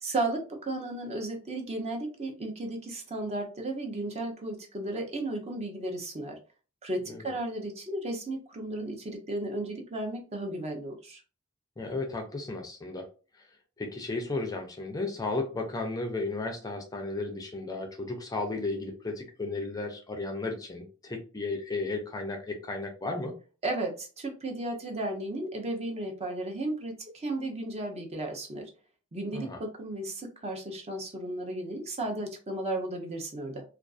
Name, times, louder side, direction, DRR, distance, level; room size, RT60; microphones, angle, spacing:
voice 1, 0.0-6.4 6.8-11.2 23.6-28.7 29.1-33.6, right 2 dB, 30° right, 3 dB, 0.6 m, -34 dB
voice 2, 11.8-13.1 13.4-13.5 13.8-23.4 29.3-29.6, left 3 dB, 20° left, 3 dB, 0.4 m, -34 dB
2.4 x 2.3 x 2.4 m, 0.35 s
head